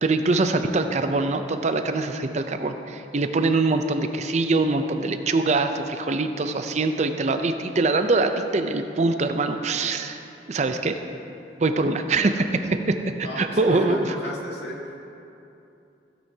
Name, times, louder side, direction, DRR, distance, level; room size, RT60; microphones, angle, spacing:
voice 1, 0.0-10.2 10.5-11.0 11.6-14.2, right 3 dB, 40° right, 7 dB, 0.5 m, -23 dB
voice 2, 13.2-14.8, equal, 70° left, -2 dB, 1.8 m, -33 dB
16.0 x 9.4 x 2.8 m, 2.7 s
head